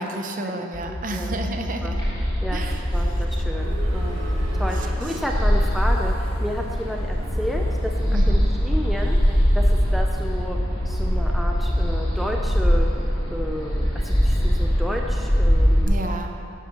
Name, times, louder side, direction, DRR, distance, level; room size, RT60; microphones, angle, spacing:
voice 1, 0.0-2.0 2.5-3.4 4.7-5.2 8.1-8.5 15.9-16.3, right 1 dB, 40° right, 4 dB, 0.8 m, -32 dB
voice 2, 0.6-1.4 1.8-2.0 2.4-2.6 2.9-4.2 4.5-10.6 10.8-12.9 13.3-15.9, equal, ahead, 0 dB, 0.6 m, -32 dB
sound 1, 0.7-12.7, left 1 dB, 70° left, 1.9 m, -30 dB
sound 2, 1.9-15.8, equal, 20° left, 2.7 m, -22 dB
sound 3, 3.5-9.4, right 1 dB, 80° right, 1.4 m, -42 dB
10.5 x 8.2 x 6.1 m, 2.6 s
head